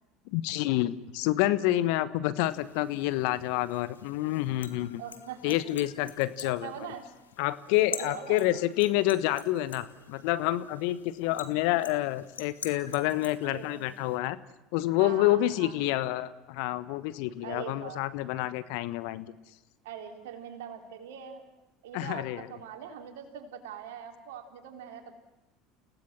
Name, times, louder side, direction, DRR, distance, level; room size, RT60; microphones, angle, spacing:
voice 1, 0.3-5.0 5.4-6.7 7.4-14.4 14.7-19.3 21.9-22.5, left 15 dB, 65° left, 15 dB, 1.2 m, -28 dB
sound 1, 2.4-14.2, left 6 dB, 90° left, 1.6 m, -47 dB
voice 2, 5.0-5.6 6.4-7.0 7.9-8.5 13.4-13.9 15.0-15.8 17.4-18.0 19.8-21.4 21.8-25.1, right 8 dB, 70° right, 5 dB, 3.7 m, -42 dB
30.0 x 17.5 x 7.5 m, 0.98 s
hypercardioid pair, 70°, 0 cm